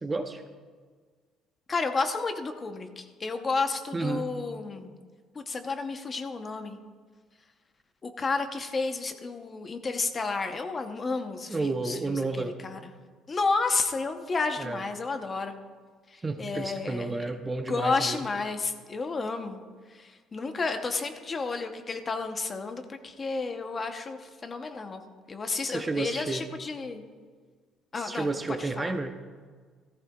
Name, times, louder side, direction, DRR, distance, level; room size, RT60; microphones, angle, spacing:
voice 1, 0.0-0.4 3.9-4.3 11.5-12.6 14.6-14.8 16.2-18.2 25.6-26.5 28.0-29.1, right 3 dB, 15° right, 6 dB, 0.6 m, -31 dB
voice 2, 1.7-5.0 5.3-6.8 8.0-12.9 13.3-15.6 16.1-17.3 17.7-19.6 19.9-25.0 25.3-27.0 27.9-28.3 28.6-28.9, left 4 dB, 25° left, 6 dB, 0.8 m, -31 dB
17.0 x 14.5 x 2.3 m, 1.6 s
cardioid pair, 150°, 0 cm